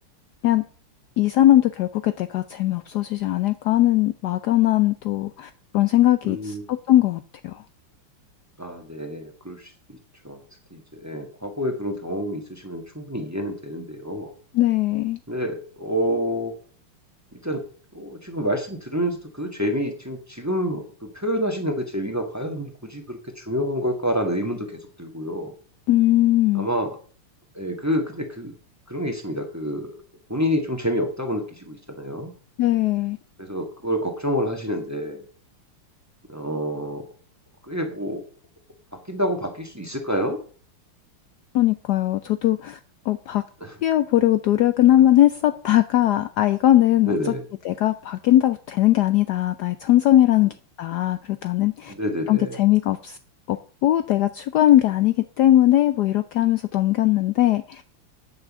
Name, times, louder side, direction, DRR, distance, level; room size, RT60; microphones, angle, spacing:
voice 1, 1.2-7.6 14.5-15.2 25.9-26.7 32.6-33.2 41.5-42.8 43.1-43.4 43.8-47.3 47.6-51.9 52.3-53.2 53.5-53.6 53.8-57.8, left 13 dB, 85° left, 11 dB, 0.9 m, -20 dB
voice 2, 6.3-6.6 8.6-10.0 10.2-10.4 10.7-14.3 15.3-16.5 17.4-17.6 17.9-24.7 25.0-25.5 26.5-27.0 27.5-28.5 28.9-29.9 30.3-32.3 33.4-35.2 36.3-37.0 37.7-38.2 39.1-40.4 43.6-43.7 47.1-47.4 51.9-52.6, equal, 10° right, 4 dB, 1.4 m, -28 dB
9.2 x 6.1 x 7.4 m, 0.42 s
omnidirectional pair, 2.4 m